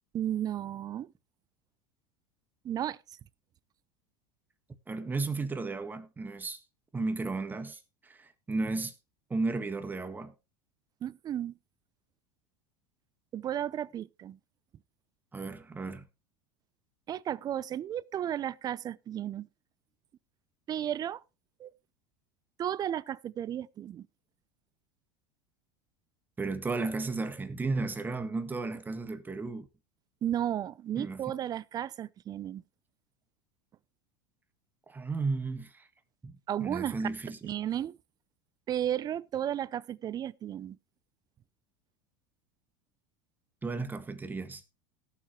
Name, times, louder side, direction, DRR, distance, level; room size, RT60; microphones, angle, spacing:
voice 1, 0.1-1.1 2.6-3.2 11.0-11.5 13.3-14.4 17.1-19.5 20.7-21.2 21.6-21.7 22.6-24.1 30.2-32.6 36.5-37.0 37.4-38.0 38.7-40.8, right 10 dB, 35° right, 0.6 m, -33 dB
voice 2, 4.9-6.6 6.9-8.9 9.3-10.3 15.3-16.0 26.4-29.7 31.0-31.2 34.9-35.9 36.2-37.4 43.6-44.6, right 3 dB, 15° right, 1.7 m, -34 dB
18.0 x 7.5 x 3.2 m
hypercardioid pair, 100°, 11 cm